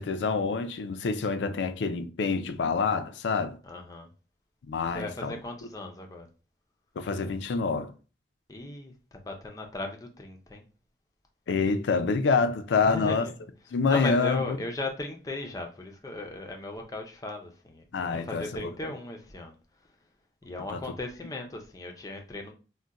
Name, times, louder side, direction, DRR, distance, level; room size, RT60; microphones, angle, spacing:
voice 1, 0.0-3.6 4.7-5.4 7.0-7.9 11.5-13.3 13.7-14.6 17.9-18.9 20.7-20.8, left 4 dB, 90° left, 0.4 m, -27 dB
voice 2, 3.6-4.1 4.9-6.3 8.5-10.6 12.8-13.3 13.9-19.5 20.4-22.5, left 2 dB, 20° left, 0.4 m, -37 dB
2.4 x 2.1 x 3.9 m
head